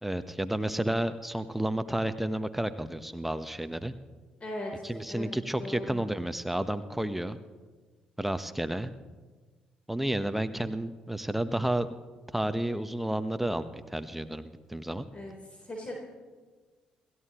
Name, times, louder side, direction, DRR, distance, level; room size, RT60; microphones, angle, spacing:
voice 1, 0.0-3.9 4.8-7.4 8.2-8.9 9.9-11.9 12.3-15.1, right 1 dB, 5° right, 10 dB, 1.1 m, -31 dB
voice 2, 4.4-5.3 5.6-6.0 15.1-15.9, left 1 dB, 35° left, -1 dB, 3.8 m, -39 dB
29.0 x 14.5 x 3.1 m, 1.4 s
figure-of-eight pair, 45°, 4 cm